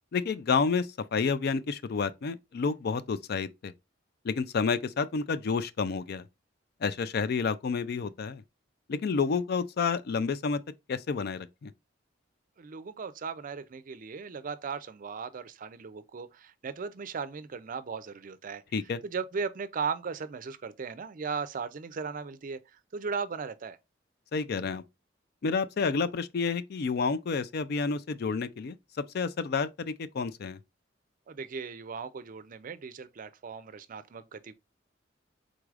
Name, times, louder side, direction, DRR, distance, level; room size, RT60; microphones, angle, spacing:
voice 1, 0.1-3.7 4.2-6.2 6.8-8.4 8.9-10.6 10.9-11.7 18.7-19.0 24.3-24.8 25.4-28.8 29.1-30.6, left 5 dB, 55° left, 0.4 m, -29 dB
voice 2, 12.6-18.6 19.0-23.8 31.3-34.5, right 5 dB, 45° right, 0.4 m, -37 dB
4.7 x 3.9 x 2.4 m
head